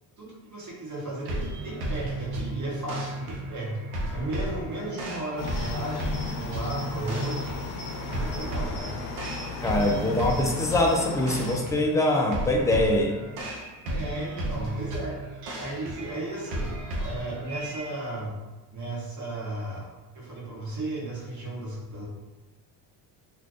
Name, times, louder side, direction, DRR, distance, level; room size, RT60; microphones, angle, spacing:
voice 1, 0.2-3.8 4.1-7.6 8.0-9.0 13.9-15.2 15.6-18.4 18.7-22.1, right 2 dB, 35° right, -4 dB, 1.2 m, -35 dB
sound 1, 1.2-18.0, right 1 dB, 80° right, 0.8 m, -34 dB
Cricket, 5.4-11.6, left 4 dB, 60° left, 0.7 m, -36 dB
voice 2, 9.6-13.2, left 1 dB, 5° left, 0 dB, 0.3 m, -23 dB
2.5 x 2.2 x 3.6 m, 1.2 s
supercardioid pair, 75°, 50 cm